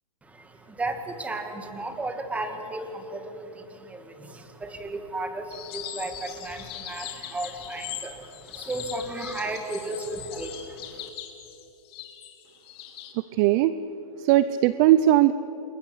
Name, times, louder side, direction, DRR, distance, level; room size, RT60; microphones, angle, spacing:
voice 1, 0.2-11.1, right 2 dB, 5° right, 6 dB, 2.1 m, -34 dB
sound 1, 5.5-13.1, left 11 dB, 45° left, 3.0 m, -40 dB
voice 2, 13.3-13.7 14.2-15.3, right 13 dB, 35° right, 15 dB, 0.6 m, -19 dB
28.5 x 21.5 x 8.3 m, 3.0 s
hypercardioid pair, 145°, 18 cm